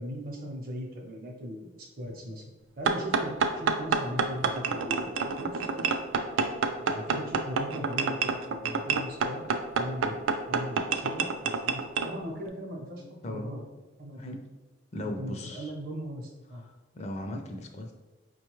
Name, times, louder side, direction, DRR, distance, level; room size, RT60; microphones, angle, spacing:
voice 1, 0.0-2.4 2.8-5.9 6.8-9.4 9.8-13.6 14.0-14.2 15.0-16.6, equal, 50° right, 0 dB, 0.7 m, -39 dB
sound 1, 2.9-12.1, right 5 dB, 85° right, 0.3 m, -28 dB
voice 2, 13.0-13.5 14.2-14.4 14.9-15.7 16.5-17.9, left 1 dB, 35° left, 3 dB, 0.4 m, -38 dB
4.8 x 2.3 x 3.0 m, 1.1 s
head